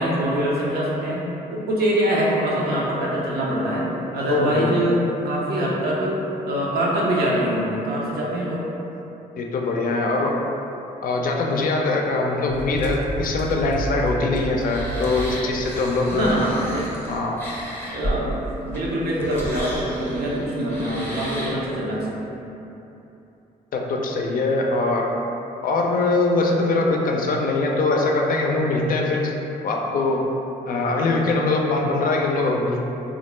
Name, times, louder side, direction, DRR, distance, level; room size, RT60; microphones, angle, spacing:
voice 1, 0.0-6.2 6.5-8.7 16.1-16.9 17.8-22.3, right 1 dB, 75° right, -5 dB, 0.6 m, -24 dB
voice 2, 4.3-4.8 9.4-10.4 11.0-16.3 17.1-17.4 23.7-25.1 25.6-29.3 29.6-30.3 30.6-32.8, left 3 dB, 60° left, 0 dB, 0.4 m, -22 dB
sound 1, 12.5-21.7, right 1 dB, 15° left, 0.6 m, -32 dB
2.4 x 2.1 x 3.0 m, 2.9 s
supercardioid pair, 55°, 16 cm